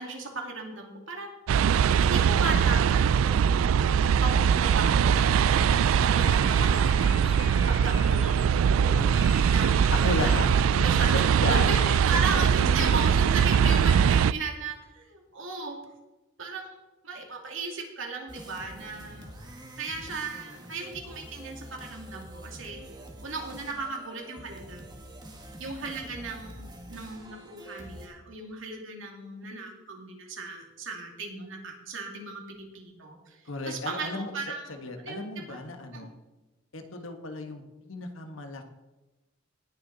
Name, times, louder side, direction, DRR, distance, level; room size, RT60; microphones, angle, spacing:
voice 1, 0.0-1.4 2.0-3.8 4.2-5.6 6.0-7.3 7.7-9.0 9.5-11.2 11.5-15.8 16.4-16.8 17.0-19.3 19.8-22.8 23.2-24.9 25.6-33.4 33.7-35.6 35.9-36.1, right 3 dB, 70° right, 1 dB, 2.5 m, -36 dB
sound 1, 1.5-14.3, right 7 dB, 90° right, 0.3 m, -22 dB
sound 2, 4.6-4.8 5.1-8.5 9.1-11.8, left 5 dB, 25° left, 0.8 m, -45 dB
voice 2, 8.9-9.3 9.9-10.5 10.7-10.9 11.1-13.1 33.4-34.3 34.7-36.1 36.7-38.8, left 2 dB, 80° left, 5 dB, 1.4 m, -34 dB
sound 3, 18.3-28.1, right 1 dB, 20° right, 1.8 m, -46 dB
18.5 x 6.7 x 4.1 m, 1.1 s
head